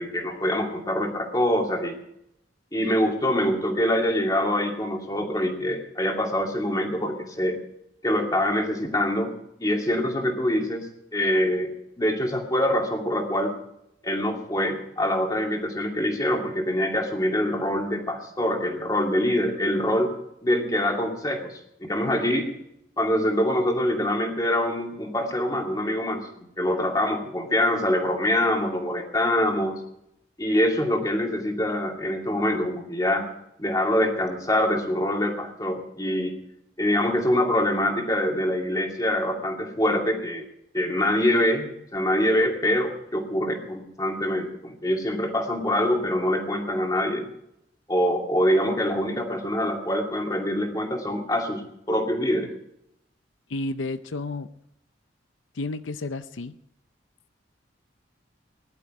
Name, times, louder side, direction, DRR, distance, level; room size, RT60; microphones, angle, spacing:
voice 1, 0.0-2.0 2.7-7.6 8.0-9.3 9.6-13.6 14.0-20.1 20.4-22.5 23.0-26.3 26.6-29.8 30.4-33.3 33.6-36.3 36.8-40.4 40.7-41.7 41.9-47.2 47.9-52.5, left 1 dB, 20° left, 2 dB, 2.4 m, -24 dB
voice 2, 53.5-54.5 55.5-56.6, left 2 dB, 85° left, 11 dB, 0.7 m, -31 dB
19.5 x 11.5 x 4.9 m, 0.80 s
head